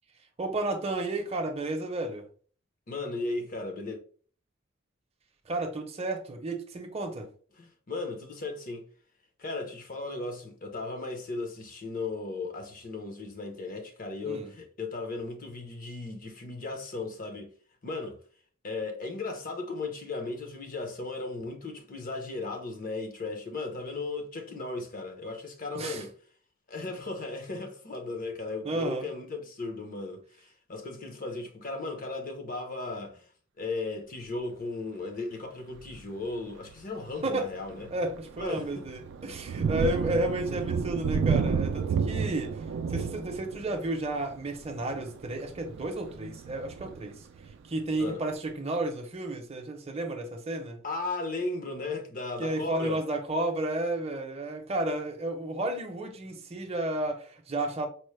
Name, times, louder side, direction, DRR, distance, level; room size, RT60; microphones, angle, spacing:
voice 1, 0.4-2.3 5.5-7.3 14.2-14.5 25.7-26.1 28.6-29.1 37.2-37.5 37.9-47.3 47.6-50.8 52.4-57.9, right 2 dB, 30° right, 0.6 m, -32 dB
voice 2, 2.9-4.0 7.6-8.9 9.4-17.5 17.8-18.2 18.6-26.1 26.7-33.2 33.6-37.9 38.4-38.7 48.0-48.2 50.8-53.0, left 3 dB, 45° left, 0.7 m, -36 dB
Thunder, 35.8-36.1 36.6-36.8 37.2-47.8, right 6 dB, 60° right, 0.3 m, -32 dB
4.3 x 2.0 x 3.1 m
head